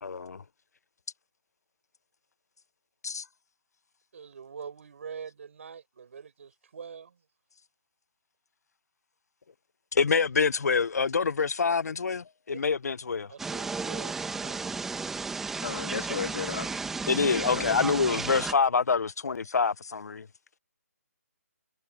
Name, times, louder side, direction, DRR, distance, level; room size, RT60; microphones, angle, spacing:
voice 1, 0.0-0.4 3.0-3.2 9.9-13.3 17.1-20.3, left 5 dB, 85° left, 0.5 m, -26 dB
voice 2, 4.1-7.2 12.5-12.6 13.3-14.7, right 6 dB, 55° right, 5.7 m, -44 dB
sound 1, 13.4-18.5, right 4 dB, 5° right, 1.1 m, -34 dB
voice 3, 15.6-16.8 17.3-17.8, left 6 dB, 50° left, 1.7 m, -34 dB
hypercardioid pair, 165°, 9 cm